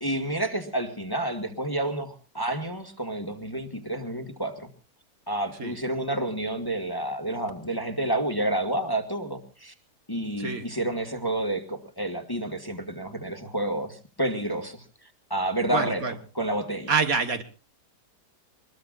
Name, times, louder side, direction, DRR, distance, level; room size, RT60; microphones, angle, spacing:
voice 1, 0.0-4.7 5.3-9.7 10.1-14.8 15.3-17.0, right 1 dB, 15° left, 1.8 m, -29 dB
voice 2, 15.7-16.1 16.9-17.4, right 5 dB, 60° right, 1.8 m, -26 dB
24.5 x 21.0 x 2.5 m
omnidirectional pair, 1.8 m